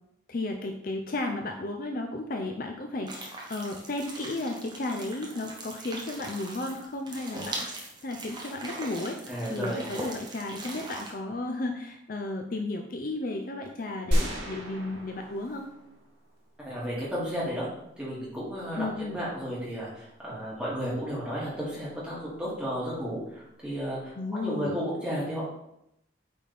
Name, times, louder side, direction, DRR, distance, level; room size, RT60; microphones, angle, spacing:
voice 1, 0.3-9.2 9.5-15.7 18.8-19.2 24.2-24.8, left 2 dB, 45° left, 3 dB, 0.5 m, -34 dB
sound 1, 3.1-11.1, right 2 dB, 20° right, 1.0 m, -40 dB
voice 2, 9.3-9.8 16.6-17.7 18.0-25.4, equal, 5° right, -8 dB, 2.3 m, -33 dB
sound 2, 14.1-16.4, equal, 85° right, 2.2 m, -31 dB
8.5 x 4.1 x 3.4 m, 0.81 s
head